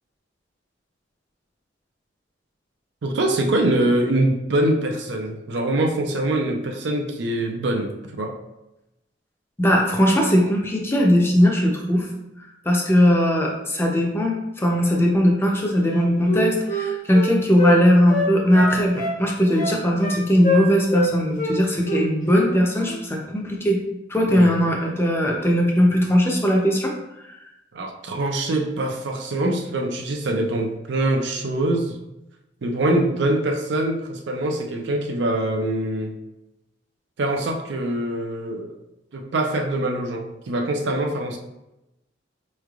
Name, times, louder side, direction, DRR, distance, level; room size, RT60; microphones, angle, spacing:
voice 1, 3.0-8.4 24.3-24.6 27.7-32.0 32.6-36.1 37.2-38.8 39.1-41.4, right 1 dB, 65° right, 3 dB, 0.5 m, -24 dB
voice 2, 9.6-12.1 12.6-23.8 24.1-26.9 27.3-27.4, equal, 15° left, 0 dB, 0.6 m, -19 dB
Wind instrument woodwind instrument, 15.8-17.8 18.1-19.2 19.5-20.2 20.4-21.1 21.3-21.5 21.8-22.5 22.7-22.9, left 1 dB, 45° left, 1.0 m, -25 dB
4.6 x 3.2 x 2.4 m, 0.89 s
head